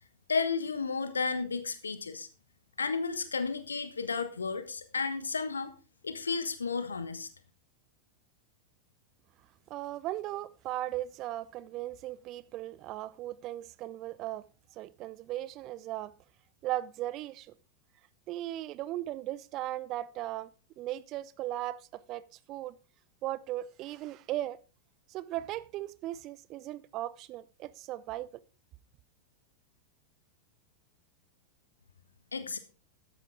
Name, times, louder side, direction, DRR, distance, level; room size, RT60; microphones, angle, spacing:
voice 1, 0.3-2.3 2.8-5.7 6.0-7.3 32.3-32.6, left 5 dB, 75° left, 1.3 m, -32 dB
voice 2, 9.7-16.2 16.6-17.5 18.3-20.5 20.8-22.8 23.2-24.6 25.1-28.4, right 14 dB, 35° right, 0.6 m, -37 dB
13.5 x 10.5 x 3.6 m
figure-of-eight pair, 90°, 0 cm